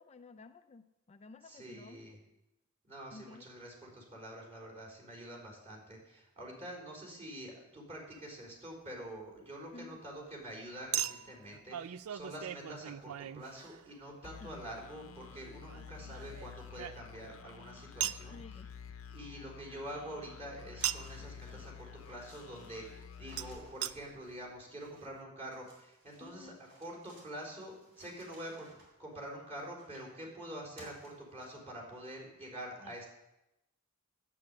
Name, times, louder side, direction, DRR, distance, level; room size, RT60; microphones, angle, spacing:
voice 1, 0.0-2.1 3.1-3.4 9.7-10.0 14.4-14.7 18.0-18.7 26.2-26.6 32.8-32.9, left 3 dB, 30° left, 8 dB, 0.4 m, -53 dB
voice 2, 1.4-2.2 2.8-18.6 19.1-28.7 29.0-33.1, right 1 dB, 30° right, -3 dB, 4.0 m, -46 dB
Chink clink, 8.1-8.3 10.9-14.1 15.7-17.4 18.0-18.3 20.8-21.2 23.4-23.5 23.8-23.9 24.6-24.7 24.9-25.0, right 11 dB, 90° right, 0.4 m, -39 dB
sound 1, 14.2-24.5, left 7 dB, 70° left, 0.7 m, -50 dB
sound 2, 20.8-24.7 25.5-30.2 30.8-31.8, right 1 dB, 60° right, 4.1 m, -59 dB
9.6 x 8.4 x 7.7 m, 0.93 s
head